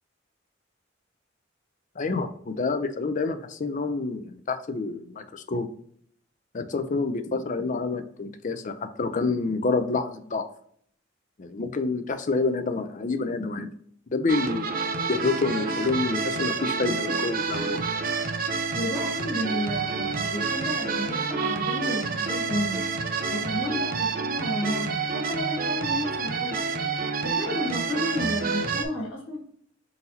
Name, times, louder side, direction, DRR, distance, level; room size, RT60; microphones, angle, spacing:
voice 1, 2.0-5.7 6.5-10.5 11.4-13.7 14.1-14.7 15.1-17.8, left 3 dB, 40° left, 9 dB, 0.5 m, -28 dB
sound 1, 14.3-28.9, right 4 dB, 50° right, 0.6 m, -28 dB
voice 2, 18.7-22.8 23.3-26.6 27.2-29.4, left 1 dB, 75° left, -3 dB, 1.5 m, -32 dB
4.1 x 3.9 x 2.8 m, 0.63 s
head